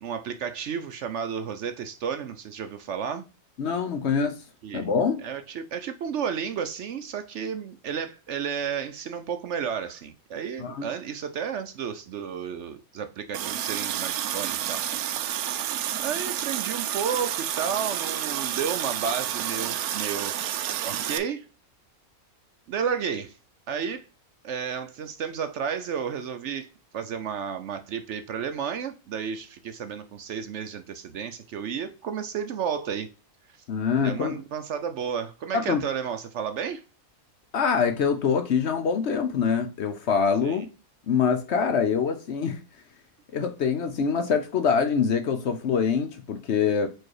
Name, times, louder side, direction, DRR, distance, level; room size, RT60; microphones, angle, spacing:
voice 1, 0.0-3.2 4.6-4.9 5.2-14.8 15.9-20.5 20.8-21.5 22.7-23.4 23.7-24.1 24.4-26.7 26.9-33.1 33.9-36.8 40.4-40.7, right 7 dB, 65° right, 0.8 m, -32 dB
voice 2, 3.6-4.4 4.7-5.2 10.6-10.9 33.7-34.4 35.5-35.8 37.5-40.7 41.1-42.6 43.3-46.9, left 6 dB, 60° left, 0.8 m, -24 dB
Water tap faucet, 13.3-21.2, right 11 dB, 90° right, 1.1 m, -30 dB
4.6 x 4.4 x 4.7 m
omnidirectional pair, 1.5 m